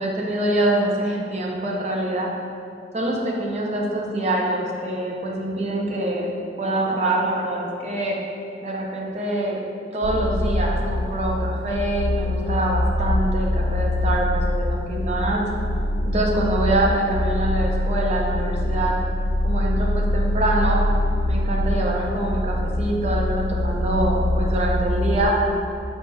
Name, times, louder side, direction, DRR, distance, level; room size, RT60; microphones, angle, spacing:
voice 1, 0.0-2.3 2.9-6.3 6.6-8.1 8.6-9.6 9.9-15.4 16.0-18.9 19.4-20.8 21.2-25.4, right 1 dB, 35° right, -1 dB, 0.5 m, -25 dB
sound 1, 10.0-25.3, left 1 dB, 85° left, 0.3 m, -24 dB
4.6 x 4.1 x 2.3 m, 2.5 s
head